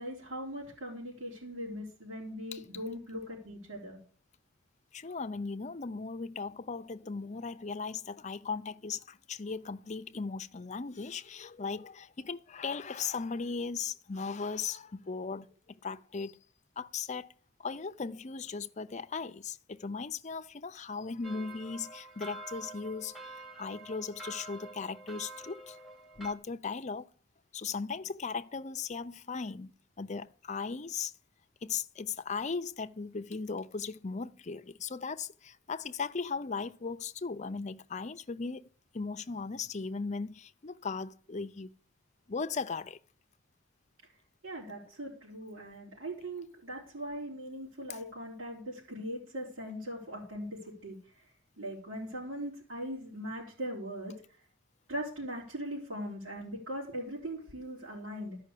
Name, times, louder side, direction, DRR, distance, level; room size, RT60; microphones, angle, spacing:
voice 1, 0.0-4.0 44.4-51.2 51.6-54.1 54.9-58.4, equal, 85° right, 4.4 m, -40 dB
voice 2, 4.9-16.4 16.8-17.3 17.6-25.8 26.2-27.1 27.5-29.7 30.0-31.1 31.6-41.7 42.3-43.0, left 5 dB, 35° left, 0.6 m, -37 dB
sound 1, 21.2-26.3, right 1 dB, ahead, 1.4 m, -47 dB
13.5 x 5.7 x 8.4 m
head